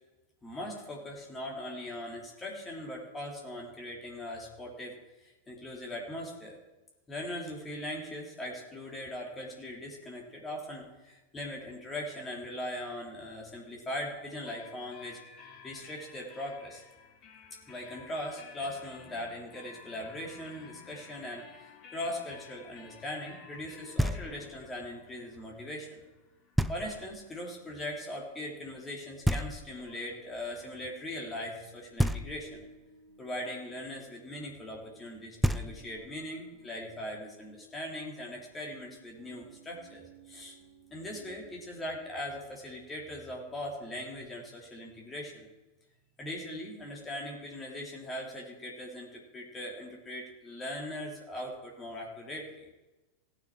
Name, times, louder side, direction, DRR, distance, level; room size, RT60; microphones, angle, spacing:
voice 1, 0.4-6.6 7.1-15.2 15.6-16.8 17.7-26.0 26.7-32.6 33.2-40.6 40.9-45.5 46.2-52.6, left 1 dB, 15° left, -1 dB, 3.0 m, -40 dB
sound 1, 14.5-28.0, left 6 dB, 35° left, 1.4 m, -54 dB
Knock, 24.0-24.6 26.6-27.2 29.2-30.1 32.0-32.8 35.1-35.2 35.4-36.2, equal, ahead, 0.4 m, -31 dB
sound 2, 27.7-42.1, right 3 dB, 50° right, 2.6 m, -59 dB
17.5 x 6.7 x 4.6 m, 1.1 s
figure-of-eight pair, 90°, 0 cm